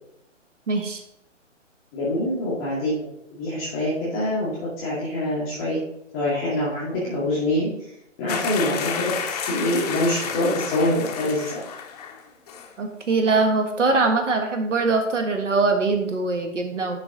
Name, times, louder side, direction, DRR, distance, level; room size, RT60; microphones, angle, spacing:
voice 1, 0.7-1.0 12.8-17.0, right 3 dB, 70° right, 5 dB, 1.5 m, -22 dB
voice 2, 1.9-5.8 6.1-11.6, left 1 dB, ahead, -31 dB, 0.3 m, -25 dB
sound 1, 8.3-12.2 12.5-12.7, left 7 dB, 30° left, 0.8 m, -31 dB
10.5 x 3.7 x 4.0 m, 0.78 s
figure-of-eight pair, 130°, 38 cm